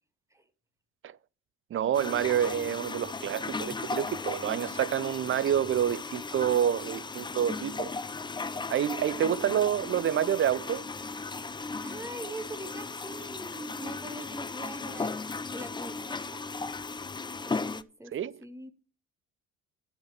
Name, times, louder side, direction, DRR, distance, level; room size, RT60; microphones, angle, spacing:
voice 1, 1.7-7.9 8.7-10.8 18.1-18.4, right 10 dB, 35° right, 0.5 m, -28 dB
sound 1, 1.9-17.8, left 4 dB, 15° left, 0.5 m, -36 dB
voice 2, 11.8-15.2 15.5-16.4 17.5-18.7, right 2 dB, 10° right, 1.5 m, -43 dB
10.5 x 5.9 x 5.9 m
hypercardioid pair, 55°, 36 cm